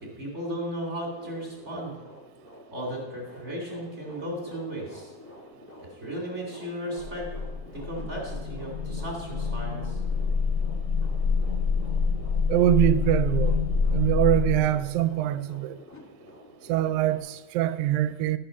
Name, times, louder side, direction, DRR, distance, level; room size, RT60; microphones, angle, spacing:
voice 1, 0.0-1.9 2.7-5.1 5.9-7.3 7.7-10.0, equal, 25° right, 2.1 m, -35 dB
sound 1, 1.0-17.2, equal, 10° left, 0.9 m, -49 dB
sound 2, 7.0-14.6, left 5 dB, 70° left, 0.7 m, -27 dB
voice 2, 12.5-13.6 13.9-15.8 16.7-18.4, right 13 dB, 80° right, 1.9 m, -23 dB
12.5 x 5.6 x 6.3 m
omnidirectional pair, 3.4 m